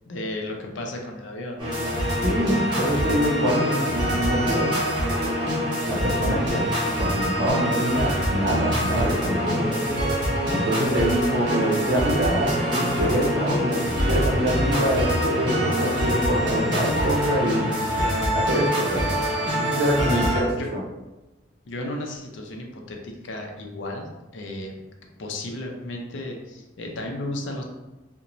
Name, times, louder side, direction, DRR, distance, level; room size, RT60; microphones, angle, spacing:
voice 1, 0.1-1.7 18.0-18.4 20.0-20.7 21.6-24.8 25.2-27.6, left 1 dB, 75° left, 2 dB, 0.5 m, -33 dB
sound 1, 1.6-20.4, equal, 25° right, 0.9 m, -25 dB
voice 2, 2.2-4.8 5.2-5.3 5.9-9.9 10.5-18.0 18.5-19.1 19.6-20.5 20.7-20.8, right 1 dB, 55° right, -3 dB, 0.6 m, -25 dB
2.5 x 2.1 x 2.9 m, 1.1 s
head